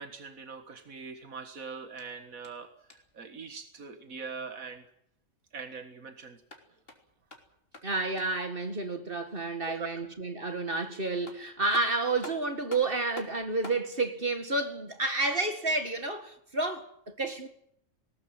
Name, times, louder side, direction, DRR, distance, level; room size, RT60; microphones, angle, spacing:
voice 1, 0.0-2.7 3.1-4.8 5.5-6.4 9.7-10.0, right 5 dB, 85° right, 2.1 m, -42 dB
sound 1, 1.8-3.2 6.3-8.5 10.8-10.9 11.3-13.9, left 1 dB, 45° left, 3.6 m, -48 dB
voice 2, 7.8-17.5, right 3 dB, 40° right, 2.1 m, -30 dB
19.5 x 18.5 x 9.0 m
omnidirectional pair, 1.4 m